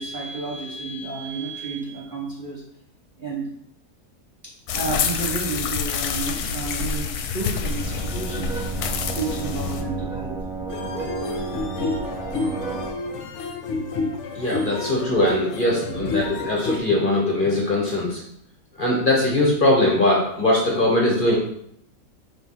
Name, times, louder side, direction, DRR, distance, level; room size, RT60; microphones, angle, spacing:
voice 1, 0.0-2.6 3.2-3.5 4.4-8.6 9.1-10.4 11.8-12.0 15.9-16.1, right 3 dB, 35° right, -4 dB, 1.2 m, -31 dB
sound 1, 4.7-9.8, left 6 dB, 80° left, 1.1 m, -27 dB
sound 2, 7.7-12.9, right 3 dB, 5° right, 0.4 m, -31 dB
sound 3, 10.7-16.8, left 3 dB, 60° left, 0.9 m, -29 dB
voice 2, 14.3-18.2 18.8-21.3, left 1 dB, 35° left, -3 dB, 1.3 m, -21 dB
4.5 x 3.8 x 5.6 m, 0.71 s
omnidirectional pair, 1.6 m